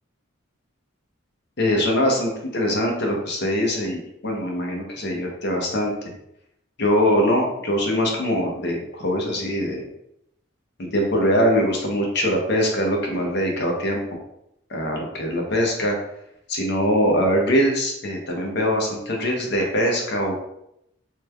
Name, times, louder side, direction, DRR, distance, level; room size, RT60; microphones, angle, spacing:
voice 1, 1.6-6.1 6.8-9.8 10.8-14.0 14.7-15.9 16.5-20.5, equal, 50° left, 0 dB, 0.7 m, -22 dB
3.2 x 2.2 x 3.2 m, 0.79 s
head